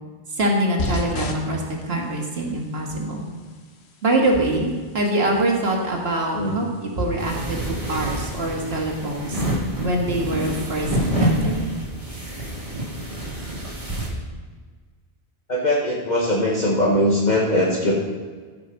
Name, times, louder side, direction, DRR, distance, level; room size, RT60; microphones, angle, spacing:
voice 1, 0.3-3.3 4.0-9.4 9.8-11.6, right 1 dB, 75° right, 0 dB, 2.0 m, -24 dB
sound 1, 0.8-9.5, left 1 dB, 85° left, 1.2 m, -37 dB
sound 2, 7.2-14.1, right 1 dB, 35° right, 1.9 m, -27 dB
voice 2, 15.5-18.0, left 1 dB, 45° left, -3 dB, 1.4 m, -21 dB
14.5 x 5.9 x 5.3 m, 1.5 s
omnidirectional pair, 1.1 m